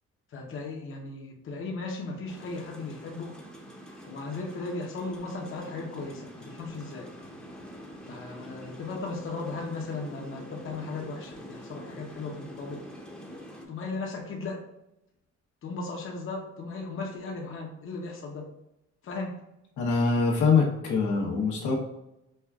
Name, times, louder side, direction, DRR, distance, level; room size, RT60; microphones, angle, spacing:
voice 1, 0.3-3.4 4.1-7.1 8.0-12.8 13.7-14.6 15.6-18.5 19.0-19.4, left 3 dB, 45° left, 0 dB, 0.7 m, -36 dB
sound 1, 2.3-13.7, equal, 5° left, 0.7 m, -45 dB
voice 2, 19.8-21.8, left 4 dB, 80° left, -2 dB, 1.0 m, -24 dB
5.4 x 2.3 x 2.3 m, 0.87 s
cardioid pair, 90°, 30 cm